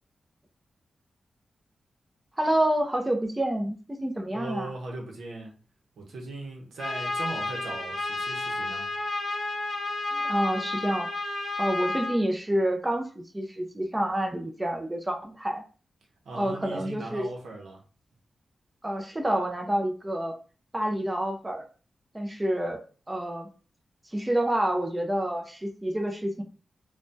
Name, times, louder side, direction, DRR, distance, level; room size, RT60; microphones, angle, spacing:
voice 1, 2.4-4.7 10.1-11.1 11.6-13.1 13.3-15.6 16.3-17.3 18.8-20.3 20.7-21.7 22.1-23.5 24.1-26.4, right 1 dB, 15° right, 0.5 m, -28 dB
voice 2, 4.3-5.5 6.0-8.8 16.2-17.8, right 2 dB, 90° right, 0.7 m, -39 dB
Trumpet, 6.8-12.2, left 2 dB, 40° left, 0.6 m, -31 dB
3.2 x 2.2 x 2.6 m
cardioid pair, 85°, 0 cm